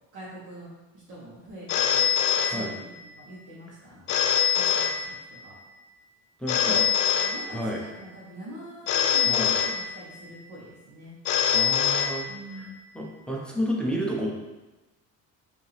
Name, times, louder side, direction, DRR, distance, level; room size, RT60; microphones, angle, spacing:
voice 1, 0.1-0.7 1.1-2.1 2.4-4.1 4.5-5.6 6.7-6.9 7.2-11.1 12.3-12.7, right 1 dB, 70° right, -7 dB, 1.2 m, -44 dB
Telephone, 1.7-3.2 4.1-5.6 6.5-8.0 8.9-10.4 11.2-12.7, left 8 dB, 70° left, 0.5 m, -25 dB
voice 2, 6.4-6.8 7.5-7.8 9.3-9.5 11.5-12.2 12.6-12.7 12.9-14.3, equal, 5° left, -3 dB, 0.4 m, -30 dB
4.8 x 2.9 x 3.3 m, 1.1 s
cardioid pair, 175°, 31 cm